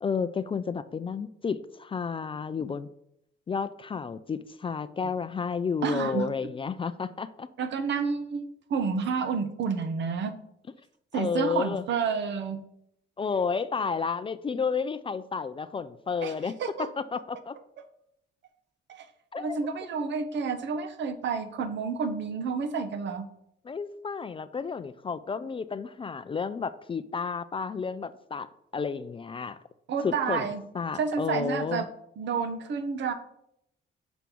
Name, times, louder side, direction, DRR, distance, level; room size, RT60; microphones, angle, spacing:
voice 1, 0.0-2.9 3.5-7.5 11.1-11.8 13.2-16.5 16.8-17.6 19.3-19.6 23.6-28.5 28.7-29.6 30.0-30.5 30.7-31.8, left 5 dB, 25° left, 13 dB, 0.3 m, -31 dB
voice 2, 5.8-6.3 7.6-10.3 11.1-12.6 16.2-16.3 16.6-16.9 18.9-19.0 19.4-23.3 29.9-30.6 30.9-31.9 32.2-33.1, right 5 dB, 65° right, 9 dB, 0.9 m, -30 dB
6.2 x 4.4 x 5.3 m, 0.76 s
cardioid pair, 90°, 20 cm